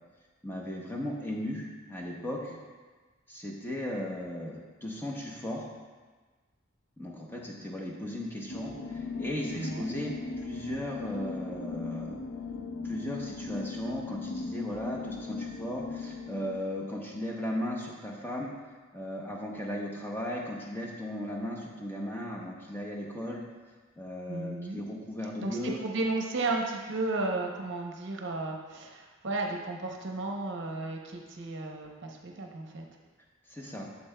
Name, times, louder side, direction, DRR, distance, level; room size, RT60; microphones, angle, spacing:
voice 1, 0.4-2.6 3.3-5.7 7.0-10.1 10.4-12.2 12.8-18.5 18.9-23.4 24.0-25.8 33.5-33.9, left 1 dB, 10° left, -3 dB, 0.7 m, -36 dB
sound 1, 8.5-16.6, left 3 dB, 70° left, 0.5 m, -38 dB
voice 2, 9.6-9.9 24.3-24.8 25.4-32.8, right 2 dB, 55° right, 1 dB, 0.7 m, -34 dB
8.3 x 7.1 x 2.2 m, 1.4 s
head